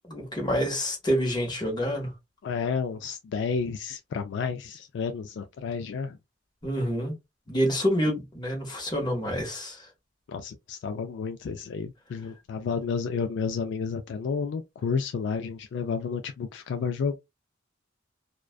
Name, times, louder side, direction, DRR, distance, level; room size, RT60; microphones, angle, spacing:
voice 1, 0.1-2.1 6.6-7.1 7.5-9.8, equal, 25° left, 1.0 m, -27 dB
voice 2, 2.4-6.2 10.3-17.2, left 5 dB, 65° left, 0.3 m, -31 dB
2.4 x 2.2 x 2.3 m
head